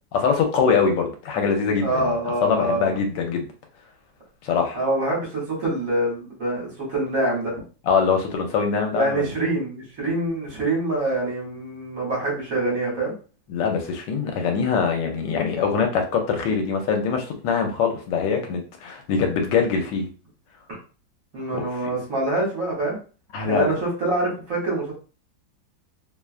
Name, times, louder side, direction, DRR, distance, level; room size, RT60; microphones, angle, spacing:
voice 1, 0.1-2.1 2.4-3.5 4.4-4.8 7.9-9.3 13.5-20.1 21.5-21.6 23.3-23.7, left 6 dB, 80° left, 4 dB, 1.3 m, -23 dB
voice 2, 1.8-3.0 4.7-7.5 8.9-13.1 21.3-23.0 23.5-24.9, right 2 dB, 55° right, -3 dB, 1.4 m, -25 dB
3.1 x 2.3 x 2.4 m, 0.35 s
omnidirectional pair, 2.0 m